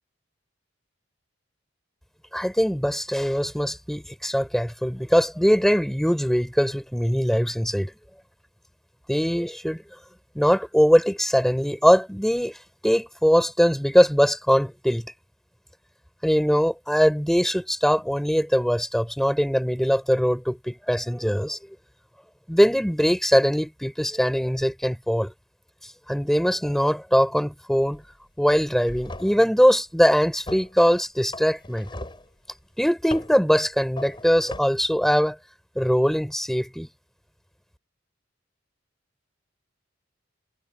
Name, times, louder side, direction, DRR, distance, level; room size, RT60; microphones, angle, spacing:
voice 1, 2.3-7.9 9.1-9.8 10.3-12.6 12.8-15.0 16.2-21.6 22.5-25.3 26.1-28.0 28.4-31.9 32.8-35.4 35.8-36.9, equal, ahead, 5.7 m, -21 dB
sound 1, 27.9-28.1 28.5-29.5 30.5-30.7 31.3-32.3 33.1-33.4 34.0-34.6, left 1 dB, 25° left, 5.6 m, -38 dB
head